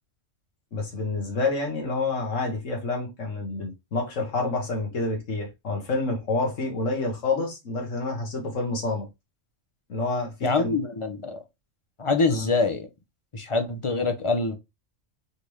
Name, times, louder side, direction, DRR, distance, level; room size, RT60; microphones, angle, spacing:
voice 1, 0.7-9.1 9.9-10.7 12.3-12.4, left 3 dB, 80° left, 1.8 m, -28 dB
voice 2, 10.4-11.4 12.0-12.9 13.3-14.6, left 3 dB, 35° left, 0.5 m, -25 dB
4.3 x 3.3 x 3.1 m
omnidirectional pair, 1.3 m